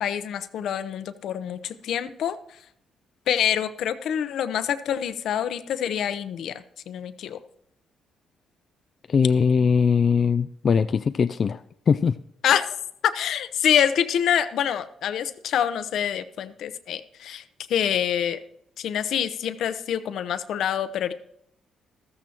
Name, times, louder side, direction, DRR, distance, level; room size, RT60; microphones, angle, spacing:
voice 1, 0.0-2.4 3.3-7.4 12.4-12.7 13.0-17.4 17.7-18.4 18.8-21.1, left 9 dB, 75° left, 12 dB, 0.7 m, -26 dB
voice 2, 9.1-11.6 11.9-12.1, left 6 dB, 45° left, 11 dB, 0.3 m, -20 dB
14.0 x 13.5 x 2.9 m, 0.72 s
cardioid pair, 90°, 0 cm